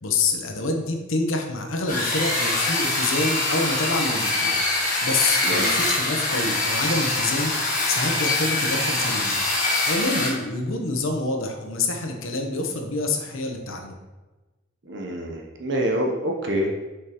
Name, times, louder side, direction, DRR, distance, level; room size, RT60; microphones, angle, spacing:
voice 1, 0.0-7.5 7.9-9.4 9.8-13.9, left 2 dB, 75° left, 3 dB, 0.9 m, -27 dB
sound 1, 1.9-10.3, left 2 dB, 40° left, 1.5 m, -24 dB
voice 2, 5.4-5.7 14.9-16.7, equal, 55° right, 0 dB, 0.8 m, -26 dB
6.4 x 5.7 x 3.0 m, 1.2 s
head